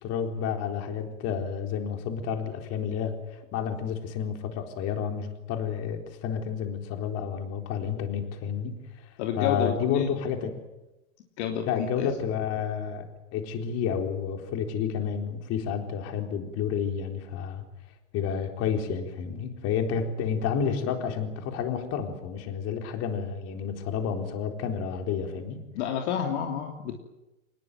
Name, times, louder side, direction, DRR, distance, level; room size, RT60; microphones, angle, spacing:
voice 1, 0.0-9.1 9.4-10.5 11.7-17.6 18.1-25.6, left 7 dB, 35° left, 5 dB, 4.1 m, -30 dB
voice 2, 9.2-10.1 11.4-12.1 25.7-27.0, left 8 dB, 55° left, 3 dB, 3.1 m, -29 dB
25.0 x 20.5 x 9.3 m, 0.97 s
supercardioid pair, 140°, 41 cm